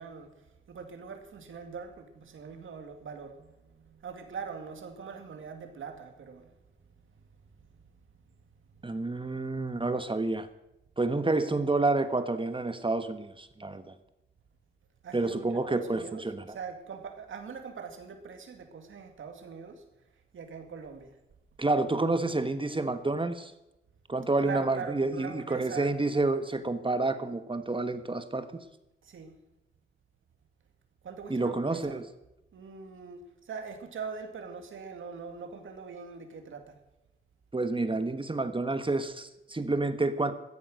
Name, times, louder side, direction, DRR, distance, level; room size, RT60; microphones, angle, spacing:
voice 1, 0.0-6.6 7.1-7.7 8.0-8.1 8.7-8.8 15.0-19.9 20.3-21.2 24.4-26.0 29.0-29.3 31.0-32.0 32.5-36.8, right 5 dB, 90° right, 2.3 m, -42 dB
voice 2, 8.8-10.5 11.0-13.9 15.1-16.6 21.6-23.5 24.1-28.6 31.3-32.1 37.5-40.3, right 2 dB, 25° right, 1.3 m, -29 dB
15.0 x 13.0 x 6.4 m
cardioid pair, 65°, 20 cm